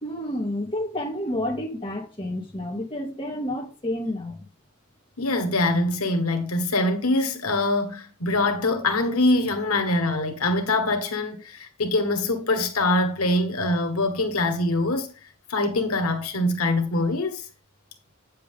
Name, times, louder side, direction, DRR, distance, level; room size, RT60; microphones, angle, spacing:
voice 1, 0.0-4.5, left 1 dB, 25° left, 2.2 m, -30 dB
voice 2, 5.2-15.1 15.5-17.5, left 2 dB, 90° left, 1.3 m, -24 dB
8.5 x 7.4 x 3.6 m
head